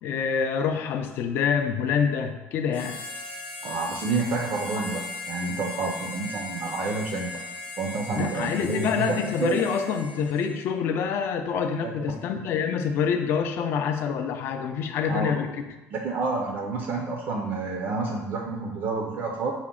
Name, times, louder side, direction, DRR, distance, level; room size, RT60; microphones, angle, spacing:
voice 1, 0.0-3.0 8.2-15.5, left 6 dB, 50° left, 6 dB, 0.4 m, -26 dB
Harmonica, 2.7-10.7, left 2 dB, 30° left, 0.9 m, -38 dB
voice 2, 3.6-7.3 7.8-9.6 11.8-12.2 15.1-15.3 15.9-19.5, right 3 dB, 45° right, 2 dB, 0.4 m, -29 dB
5.7 x 2.1 x 3.6 m, 1.0 s
cardioid pair, 160°, 5 cm